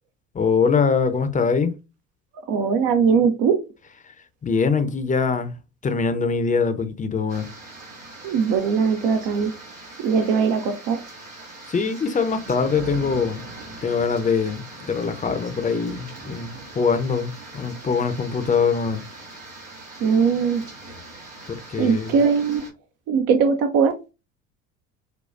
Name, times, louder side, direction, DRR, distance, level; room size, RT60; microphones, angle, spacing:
voice 1, 0.3-1.7 4.4-5.5 5.8-7.5 11.7-13.4 13.8-19.0 21.5-22.2, left 5 dB, 20° left, 0.6 m, -23 dB
voice 2, 2.5-3.6 8.2-9.5 10.0-11.0 20.0-20.6 21.8-22.6 23.1-23.9, right 6 dB, 55° right, 0.7 m, -20 dB
sound 1, 7.3-22.7, right 2 dB, 85° right, 2.0 m, -40 dB
6.4 x 2.3 x 2.5 m
figure-of-eight pair, 60°, 39 cm